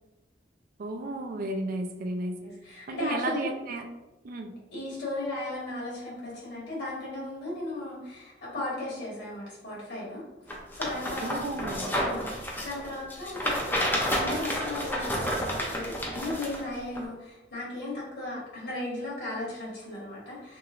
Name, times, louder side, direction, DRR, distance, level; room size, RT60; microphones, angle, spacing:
voice 1, 0.8-2.4 2.9-3.8 4.2-4.5 11.2-11.8, right 2 dB, 50° right, 4 dB, 0.4 m, -33 dB
voice 2, 2.4-3.5 4.7-10.3 10.7-11.4 12.0-20.6, left 2 dB, 65° left, -6 dB, 1.5 m, -36 dB
sound 1, 10.5-16.6 17.0-17.1, equal, 10° left, 0.5 m, -30 dB
3.0 x 2.8 x 2.5 m, 1.0 s
head